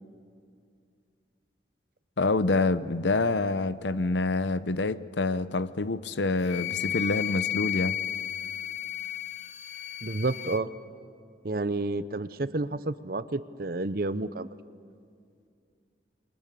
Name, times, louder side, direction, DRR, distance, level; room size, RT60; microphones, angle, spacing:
voice 1, 2.2-8.0, left 3 dB, 80° left, 0.8 m, -27 dB
Wind instrument woodwind instrument, 6.4-10.6, left 11 dB, 40° left, 0.9 m, -33 dB
voice 2, 10.0-10.7 11.4-14.5, right 2 dB, 55° right, 0.8 m, -30 dB
29.0 x 23.5 x 6.9 m
head